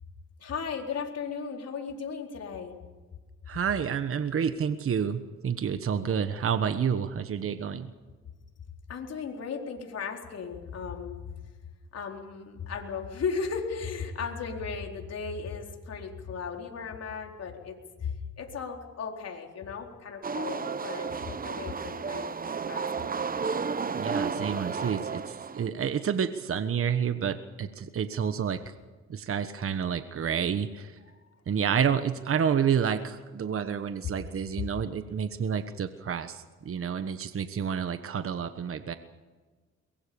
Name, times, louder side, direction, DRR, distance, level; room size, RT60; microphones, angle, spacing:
voice 1, 0.4-2.7 8.9-11.3 11.9-23.2, left 5 dB, 55° left, 2 dB, 4.2 m, -36 dB
voice 2, 3.5-7.9 23.9-28.6 29.1-30.9 31.5-38.9, right 7 dB, 45° right, 10 dB, 1.3 m, -29 dB
sound 1, 20.2-25.7, right 5 dB, 30° right, 1.0 m, -32 dB
23.0 x 21.5 x 7.1 m, 1.3 s
cardioid pair, 90°, 30 cm